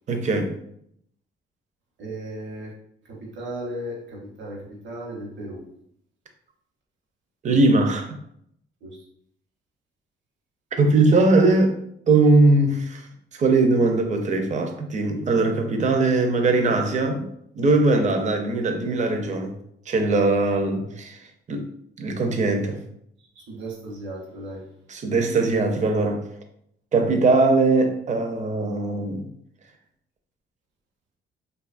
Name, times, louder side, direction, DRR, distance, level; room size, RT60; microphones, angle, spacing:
voice 1, 0.1-0.5 7.4-8.1 10.7-11.8 12.1-13.1 13.3-17.3 17.5-19.5 19.9-21.2 21.5-21.7 22.0-22.8 24.9-26.3 26.9-29.2, right 3 dB, 40° right, 5 dB, 0.5 m, -20 dB
voice 2, 2.0-2.7 3.1-5.6 8.8-9.0 23.5-24.6, right 1 dB, 70° right, -2 dB, 1.0 m, -35 dB
2.6 x 2.3 x 2.4 m, 0.72 s
cardioid pair, 90°, 20 cm